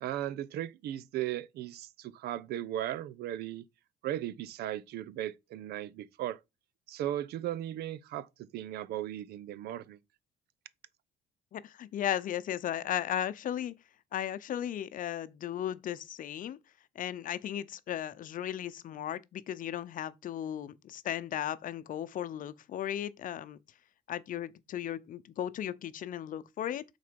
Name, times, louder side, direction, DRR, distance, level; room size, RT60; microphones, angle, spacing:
voice 1, 0.0-3.6 4.0-6.4 6.9-10.0, right 12 dB, 70° right, 0.7 m, -37 dB
voice 2, 11.5-13.7 14.1-16.6 16.9-23.6 24.1-26.8, left 10 dB, 50° left, 0.7 m, -36 dB
6.6 x 4.1 x 5.1 m
cardioid pair, 110°, 17 cm